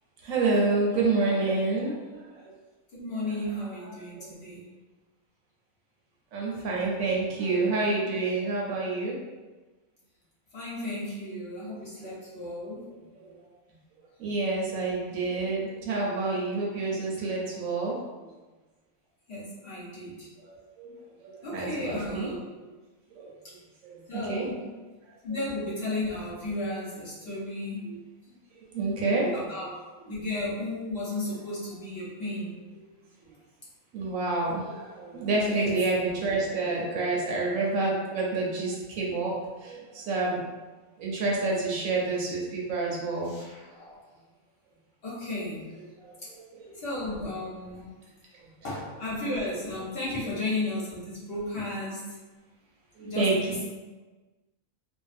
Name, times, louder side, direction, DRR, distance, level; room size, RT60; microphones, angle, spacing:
voice 1, 0.2-2.5 3.8-4.3 6.3-9.2 13.1-13.5 14.2-18.2 20.4-22.3 23.1-23.3 23.8-24.5 25.3-25.4 27.8-28.0 28.7-29.7 33.9-40.4 41.0-43.3 46.0-46.7 50.2-50.3 53.0-53.6, right 3 dB, 75° right, -3 dB, 1.0 m, -29 dB
voice 2, 2.9-4.7 10.5-12.9 19.3-20.3 21.4-22.5 24.1-24.7 25.2-28.0 29.3-29.7 30.1-32.6 35.4-35.7 43.3-44.0 45.0-45.8 46.7-47.9 48.6-52.2 53.0-53.5, left 2 dB, 50° left, -8 dB, 0.9 m, -34 dB
2.6 x 2.1 x 2.5 m, 1.2 s
omnidirectional pair, 1.4 m